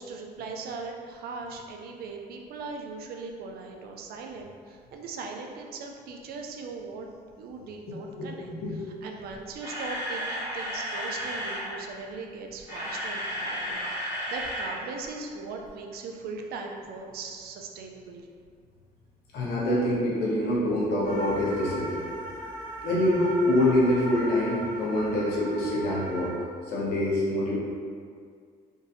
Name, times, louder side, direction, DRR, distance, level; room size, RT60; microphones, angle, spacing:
voice 1, 0.0-7.1 7.4-18.3, right 4 dB, 65° right, 2 dB, 0.5 m, -39 dB
voice 2, 8.1-8.7 19.3-22.0 22.8-26.3 26.7-27.6, left 1 dB, 75° left, -6 dB, 1.0 m, -25 dB
Camera, 9.3-11.7 12.5-14.8 15.0-15.2 15.6-15.7, equal, 20° right, 1.3 m, -33 dB
sound 1, 21.0-26.3, right 2 dB, 55° left, 1.2 m, -38 dB
3.8 x 2.6 x 2.6 m, 2.1 s
cardioid pair, 110°, 17 cm